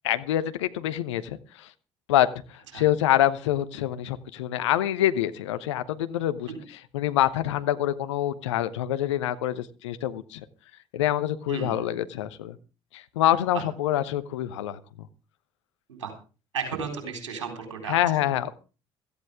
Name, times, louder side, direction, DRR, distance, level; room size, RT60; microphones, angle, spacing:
voice 1, 0.0-1.7 2.1-6.5 6.9-10.4 10.9-12.6 12.9-14.8 17.9-18.5, left 12 dB, 75° left, 0.9 m, -26 dB
voice 2, 11.5-11.9 13.5-13.6 15.9-16.1 16.5-18.4, right 6 dB, 80° right, 4.1 m, -34 dB
16.5 x 14.5 x 3.6 m
figure-of-eight pair, 50°, 16 cm